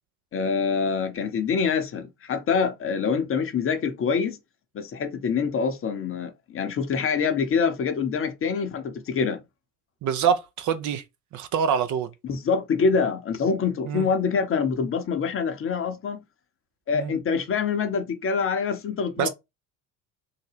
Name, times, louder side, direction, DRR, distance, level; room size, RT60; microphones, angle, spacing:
voice 1, 0.3-4.4 4.7-9.4 12.2-16.2 16.9-19.3, left 5 dB, 30° left, 0.7 m, -25 dB
voice 2, 10.0-11.0 11.3-12.1 13.9-14.1 16.9-17.1 19.2-19.3, right 7 dB, 45° right, 0.6 m, -25 dB
3.7 x 2.1 x 3.3 m
hypercardioid pair, 70°, 44 cm